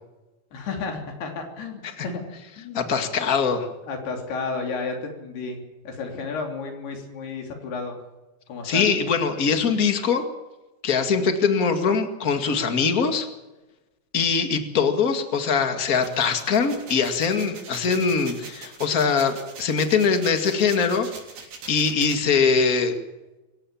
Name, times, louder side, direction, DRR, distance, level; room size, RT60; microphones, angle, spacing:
voice 1, 0.5-2.2 2.6-2.9 3.9-8.0 8.5-8.9, left 4 dB, 80° left, 2 dB, 5.2 m, -32 dB
voice 2, 2.7-3.7 8.6-10.2 10.8-13.3 14.1-21.1 21.7-23.0, left 5 dB, 30° left, 6 dB, 1.7 m, -22 dB
sound 1, 15.9-22.2, right 5 dB, 80° right, 5.7 m, -42 dB
25.5 x 16.0 x 7.3 m, 1.1 s
omnidirectional pair, 4.6 m